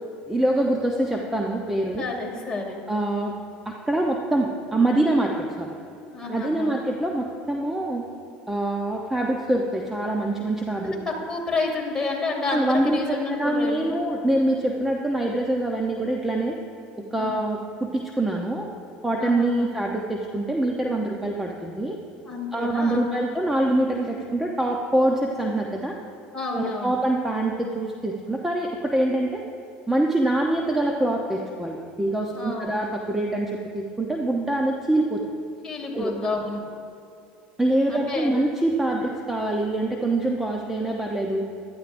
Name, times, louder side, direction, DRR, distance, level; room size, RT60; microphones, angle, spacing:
voice 1, 0.2-2.1 2.9-3.4 3.7-5.7 6.3-8.0 8.5-11.0 12.5-16.6 17.1-18.7 19.0-22.0 22.5-26.0 26.5-29.4 29.9-35.2 35.9-36.1 37.6-41.5, right 1 dB, 5° right, 0 dB, 0.8 m, -25 dB
voice 2, 2.0-2.8 6.1-6.7 10.8-14.0 17.2-17.4 19.2-19.7 22.2-23.2 26.3-26.9 32.3-32.8 35.6-36.6 37.9-38.3, left 3 dB, 15° left, -2 dB, 2.6 m, -30 dB
16.0 x 12.0 x 2.6 m, 2.6 s
supercardioid pair, 115°, 4 cm